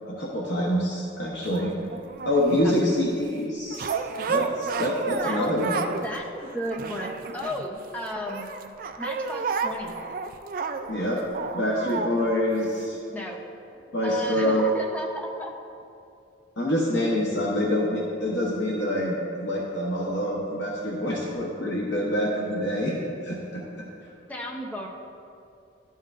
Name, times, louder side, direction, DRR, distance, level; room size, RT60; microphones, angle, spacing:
voice 1, 0.1-1.7 2.2-3.9 4.3-5.9 10.9-11.2 11.5-13.0 13.9-14.8 16.6-22.9 23.2-23.6, equal, 65° left, -4 dB, 0.9 m, -26 dB
sound 1, 1.4-2.8 3.7-6.1 6.4-7.9 8.3-12.1 12.8-12.9, right 5 dB, 45° right, 0.3 m, -31 dB
voice 2, 6.0-8.5 9.0-9.9 13.1-13.4 14.0-15.5 24.3-24.9, equal, 10° left, -1 dB, 0.6 m, -34 dB
12.0 x 5.5 x 2.5 m, 2.6 s
head